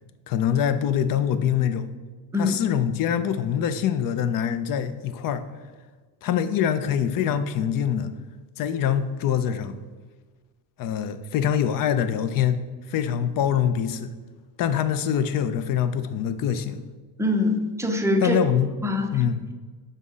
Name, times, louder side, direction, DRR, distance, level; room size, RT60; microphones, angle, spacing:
voice 1, 0.3-1.8 2.4-5.4 6.2-8.1 8.6-9.8 10.8-12.6 12.9-14.1 14.6-16.8 18.2-18.7 19.1-19.5, left 9 dB, 55° left, 11 dB, 0.5 m, -24 dB
voice 2, 17.2-18.4 18.8-19.1, left 2 dB, 5° right, 4 dB, 0.5 m, -23 dB
5.4 x 3.6 x 5.4 m, 1.4 s
cardioid pair, 135°, 39 cm